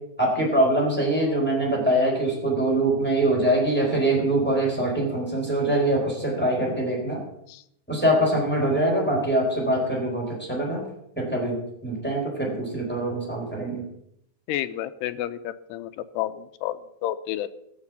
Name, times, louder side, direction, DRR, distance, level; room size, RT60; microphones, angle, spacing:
voice 1, 0.2-7.2 7.9-10.8 11.2-13.9, right 1 dB, ahead, -2 dB, 3.6 m, -23 dB
voice 2, 14.5-17.5, left 12 dB, 80° left, 11 dB, 2.6 m, -31 dB
14.5 x 7.5 x 7.1 m, 0.74 s
omnidirectional pair, 5.0 m